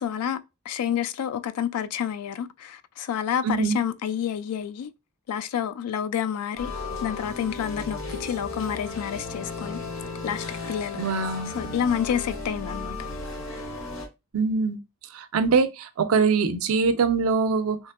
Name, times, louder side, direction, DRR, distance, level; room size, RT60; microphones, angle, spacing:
voice 1, 0.0-0.4 0.7-4.9 5.3-6.7 7.0-9.8 10.2-11.0 11.6-13.0, left 8 dB, 90° left, 0.3 m, -29 dB
voice 2, 3.4-3.8 10.9-11.6 14.3-14.8 15.1-17.8, right 4 dB, 65° right, 0.4 m, -23 dB
sound 1, 6.6-14.1, left 3 dB, 60° left, 0.8 m, -35 dB
2.8 x 2.5 x 2.4 m
head